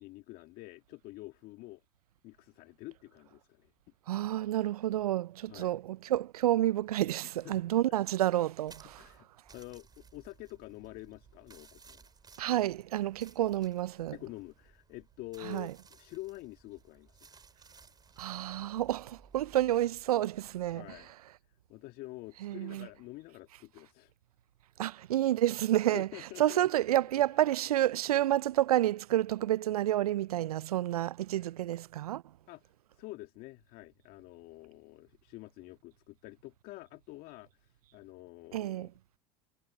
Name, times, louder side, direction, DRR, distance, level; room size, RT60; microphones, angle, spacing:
voice 1, 0.0-1.8 2.2-3.7 5.5-5.7 7.4-7.7 9.0-9.3 9.5-12.1 14.1-17.3 20.7-21.1 21.7-24.1 25.9-26.7 27.1-27.2 31.4-31.5 32.5-32.6 33.0-38.9, left 19 dB, 50° left, 2.0 m, -47 dB
voice 2, 4.1-9.1 12.4-14.2 15.4-15.7 18.2-20.9 22.4-22.9 24.8-26.1 26.4-32.2 38.5-38.9, right 13 dB, 75° right, 0.7 m, -29 dB
sound 1, 8.6-21.1, right 5 dB, 20° right, 5.0 m, -60 dB
figure-of-eight pair, 80°, 20 cm